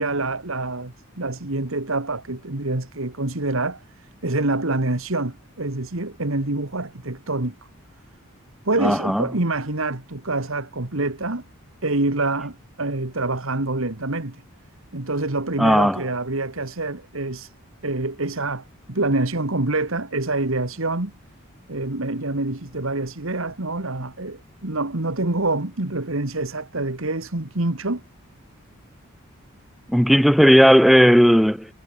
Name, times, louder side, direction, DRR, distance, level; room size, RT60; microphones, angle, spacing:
voice 1, 0.0-7.6 8.7-11.4 11.8-14.4 14.9-17.5 17.8-21.1 21.7-28.0, right 2 dB, 65° right, 2.0 m, -26 dB
voice 2, 8.8-9.2 15.6-16.0 29.9-31.7, equal, ahead, 0.7 m, -15 dB
head